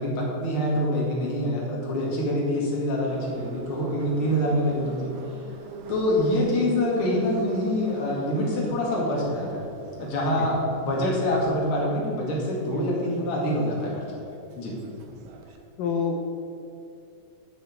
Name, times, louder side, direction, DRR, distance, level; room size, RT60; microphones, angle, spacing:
voice 1, 0.0-5.1 5.9-9.6 10.0-14.1 14.6-14.8, left 1 dB, 45° left, -4 dB, 2.7 m, -25 dB
Subway metro underground, 3.0-15.6, right 5 dB, 75° right, 2.3 m, -44 dB
voice 2, 15.8-16.3, left 5 dB, 80° left, 2 dB, 2.5 m, -27 dB
7.5 x 6.5 x 7.6 m, 2.4 s
omnidirectional pair, 3.8 m